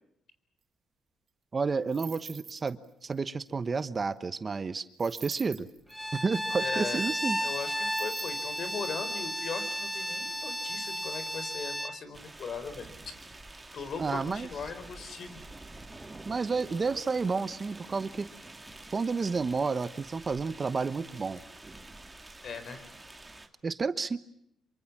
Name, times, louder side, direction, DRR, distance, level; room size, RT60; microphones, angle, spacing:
voice 1, 1.5-2.8 3.0-5.7 6.1-7.4 14.0-14.5 16.3-18.2 18.9-21.4 23.6-24.2, right 4 dB, 35° right, 13 dB, 1.1 m, -30 dB
sound 1, 1.9-2.9 3.1-3.2 5.0-6.0 7.8-9.2, right 7 dB, 55° right, 1.8 m, -46 dB
Bowed string instrument, 5.9-12.0, equal, ahead, 1.5 m, -33 dB
voice 2, 6.6-7.0 7.4-13.1 13.7-15.4 22.4-23.0, left 5 dB, 55° left, 11 dB, 4.5 m, -39 dB
sound 2, 12.1-23.5, right 2 dB, 15° right, 2.5 m, -48 dB
26.5 x 24.5 x 7.4 m, 0.73 s
cardioid pair, 90°, 0 cm